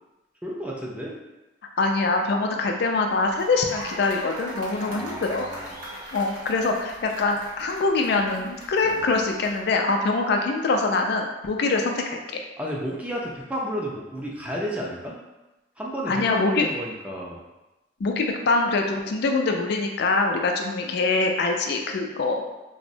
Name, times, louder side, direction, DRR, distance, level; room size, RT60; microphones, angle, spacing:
voice 1, 0.4-1.2 4.9-5.7 8.8-9.0 12.6-15.2 15.8-17.4, equal, 5° right, -3 dB, 0.4 m, -32 dB
voice 2, 1.8-5.5 6.1-12.2 16.1-16.7 18.0-22.4, left 3 dB, 60° left, 3 dB, 0.4 m, -24 dB
sound 1, 3.1-9.7, right 1 dB, 50° right, 0.8 m, -40 dB
3.5 x 2.0 x 2.6 m, 1.1 s
head